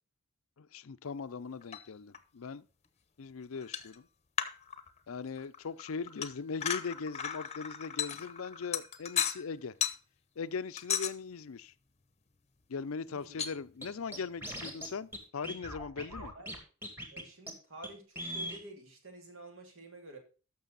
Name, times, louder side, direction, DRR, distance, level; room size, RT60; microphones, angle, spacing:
voice 1, 0.6-2.7 3.2-4.1 5.1-9.7 10.4-11.7 12.7-16.3, left 5 dB, 70° left, 0.5 m, -40 dB
sound 1, 1.6-1.9 2.1-2.2 3.6-4.0 4.4-5.1 5.4-9.5 9.8-10.0 10.8-11.1 13.4-13.5, left 8 dB, 30° left, 0.9 m, -35 dB
voice 2, 13.1-13.4 16.0-16.5 17.1-20.2, right 2 dB, 65° right, 2.7 m, -50 dB
Scratching (performance technique), 13.8-13.9 14.1-14.9 15.1-15.2 15.4-16.6 16.8-17.2 17.5-17.6 17.8-17.9 18.2-18.6, equal, 10° right, 2.3 m, -40 dB
13.0 x 6.2 x 4.0 m
head